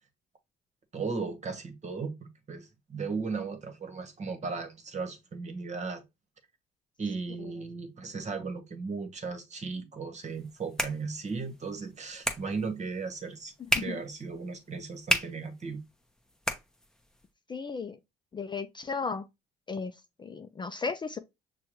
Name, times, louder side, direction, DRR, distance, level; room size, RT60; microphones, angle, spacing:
voice 1, 0.9-6.0 7.0-15.8, right 4 dB, 35° right, 1.1 m, -36 dB
sound 1, 10.2-17.3, equal, 5° left, 0.8 m, -36 dB
voice 2, 17.5-18.0 18.3-19.2 19.7-19.9 20.2-21.2, left 4 dB, 25° left, 0.4 m, -35 dB
6.0 x 2.3 x 3.0 m
supercardioid pair, 70°, 20 cm